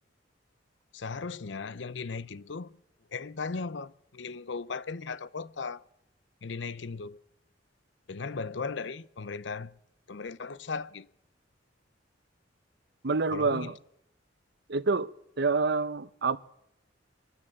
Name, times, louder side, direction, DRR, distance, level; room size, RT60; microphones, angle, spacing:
voice 1, 0.9-2.7 3.1-5.8 6.4-7.2 8.1-9.7 10.1-11.1 13.3-13.7, left 4 dB, 70° left, 0.7 m, -37 dB
voice 2, 13.0-13.8 14.7-15.1 15.4-16.4, right 4 dB, 65° right, 0.8 m, -27 dB
23.5 x 12.5 x 8.7 m
head